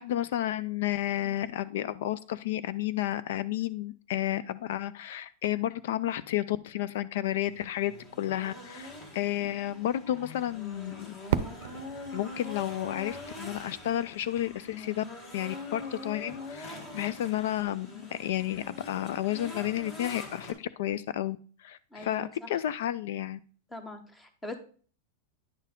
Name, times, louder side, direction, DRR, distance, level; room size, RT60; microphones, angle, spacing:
voice 1, 0.0-11.1 12.1-15.0 15.3-23.4, left 13 dB, 65° left, 16 dB, 0.3 m, -32 dB
sound 1, 7.3-20.5, left 2 dB, 30° left, 1.5 m, -44 dB
Fireworks, 11.3-14.2, right 10 dB, 70° right, 0.5 m, -35 dB
voice 2, 21.9-22.5 23.7-24.5, left 2 dB, 10° left, 8 dB, 0.9 m, -42 dB
10.0 x 4.4 x 3.6 m, 0.43 s
supercardioid pair, 160°, 0 cm